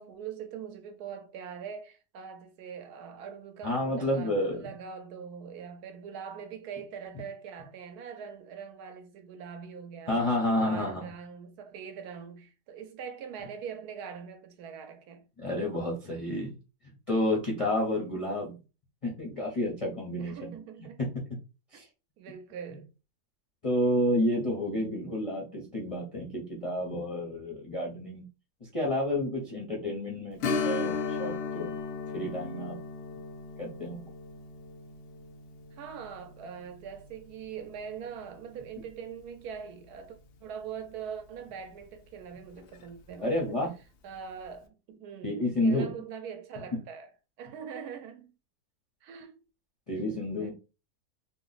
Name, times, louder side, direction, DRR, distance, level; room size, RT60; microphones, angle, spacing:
voice 1, 0.0-10.3 10.5-15.3 20.2-21.1 22.2-22.9 35.8-43.6 44.0-47.1 47.4-48.3 49.0-49.4 50.4-50.5, right 7 dB, 75° right, 1.1 m, -42 dB
voice 2, 3.6-4.7 10.1-11.1 15.4-16.6 17.1-18.6 19.0-20.6 21.7-21.9 23.6-28.2 28.6-31.8 32.1-32.8 33.6-34.1 43.2-43.7 45.2-45.9 49.9-50.5, left 1 dB, 40° left, 0.5 m, -30 dB
Strum, 30.4-39.6 39.9-40.0 42.6-42.7 43.2-43.3, left 4 dB, 90° left, 0.6 m, -37 dB
2.9 x 2.0 x 3.9 m
omnidirectional pair, 1.7 m